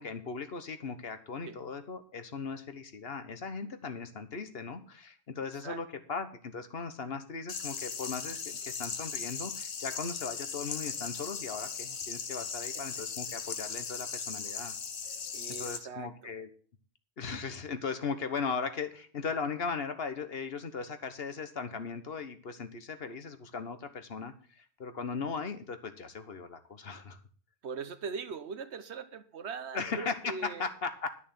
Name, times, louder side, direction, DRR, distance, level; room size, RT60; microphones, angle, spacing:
voice 1, 0.0-14.7 15.5-16.5 17.2-27.2 29.7-31.2, left 5 dB, 65° left, 1.4 m, -38 dB
sound 1, 7.5-15.8, left 6 dB, 80° left, 1.3 m, -38 dB
voice 2, 15.3-16.3 27.6-30.7, right 5 dB, 85° right, 1.3 m, -41 dB
11.0 x 6.3 x 7.4 m
omnidirectional pair, 1.1 m